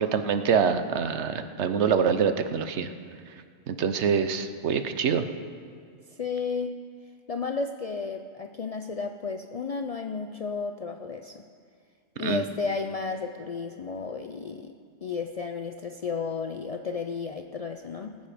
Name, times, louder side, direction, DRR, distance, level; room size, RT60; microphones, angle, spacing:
voice 1, 0.0-2.9 3.7-5.2 12.2-12.4, right 6 dB, 75° right, 9 dB, 1.0 m, -25 dB
voice 2, 6.1-6.8 7.3-11.4 12.2-14.7 15.0-18.2, left 5 dB, 55° left, 5 dB, 0.4 m, -33 dB
19.0 x 8.1 x 5.0 m, 2.2 s
omnidirectional pair, 1.2 m